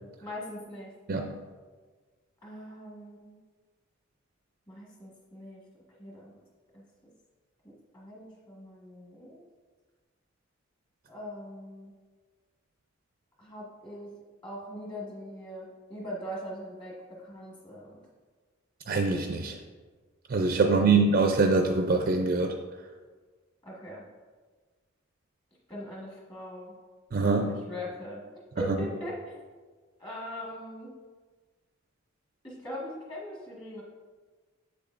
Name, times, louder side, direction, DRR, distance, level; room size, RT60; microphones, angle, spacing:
voice 1, 0.2-0.9 2.4-3.4 4.7-5.6 6.0-6.3 6.7-6.8 7.6-9.4 11.1-11.9 13.4-14.1 14.4-18.1 20.6-21.0 23.6-24.1 25.7-26.7 27.3-28.3 28.5-29.3 30.0-30.9 32.4-33.8, equal, 25° left, -5 dB, 1.6 m, -41 dB
voice 2, 18.9-19.6 20.3-22.6 27.1-27.5 28.6-28.8, right 3 dB, 45° right, 4 dB, 0.4 m, -24 dB
7.6 x 6.8 x 2.5 m, 1.4 s
head